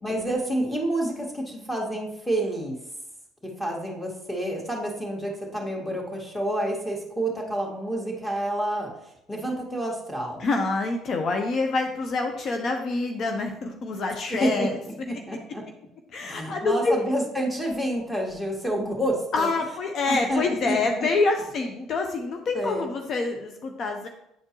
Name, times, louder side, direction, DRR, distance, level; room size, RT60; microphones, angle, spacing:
voice 1, 0.0-2.8 3.4-8.9 9.3-10.4 14.3-14.5 14.9-15.6 16.3-19.5 20.1-21.1 22.5-22.9, right 1 dB, 10° left, 0 dB, 2.0 m, -29 dB
voice 2, 10.4-14.8 16.1-17.0 19.3-24.1, left 3 dB, 50° left, 4 dB, 0.7 m, -26 dB
8.4 x 4.4 x 3.1 m, 0.78 s
hypercardioid pair, 65°, 0 cm